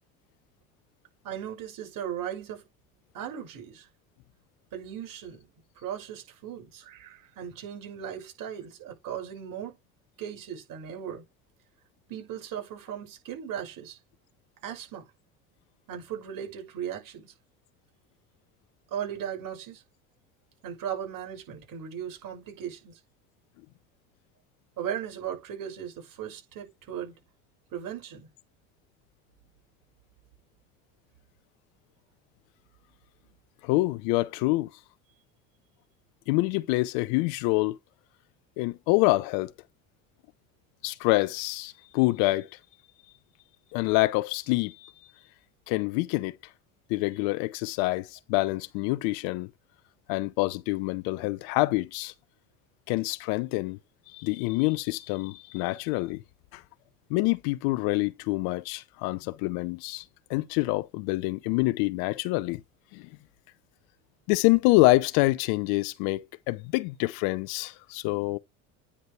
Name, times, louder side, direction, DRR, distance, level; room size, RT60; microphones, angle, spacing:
voice 1, 1.2-2.6 3.1-3.9 4.7-5.4 5.8-9.8 10.2-11.2 12.1-14.0 14.6-15.0 15.9-17.3 18.9-19.8 20.6-23.0 24.8-27.2 27.7-28.3, right 9 dB, 55° right, 6.0 m, -37 dB
voice 2, 33.6-34.7 36.3-37.8 38.6-39.5 40.8-42.5 43.7-44.9 45.7-46.4 46.9-49.5 50.1-52.1 52.9-53.8 54.1-56.2 56.5-56.6 57.1-60.0 60.3-62.6 62.9-63.1 64.3-68.4, left 21 dB, 60° left, 0.7 m, -26 dB
9.7 x 5.0 x 3.3 m
hypercardioid pair, 70°, 41 cm